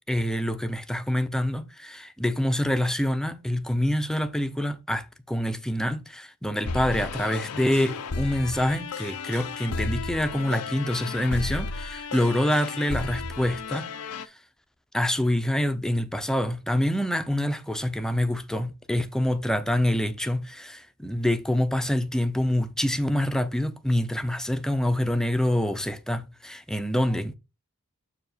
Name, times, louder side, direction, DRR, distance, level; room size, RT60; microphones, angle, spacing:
voice 1, 0.1-13.9 14.2-14.3 14.9-27.3, left 1 dB, 5° left, 0.6 m, -26 dB
sound 1, 6.7-14.3, left 4 dB, 85° left, 0.7 m, -33 dB
7.0 x 4.9 x 5.0 m
head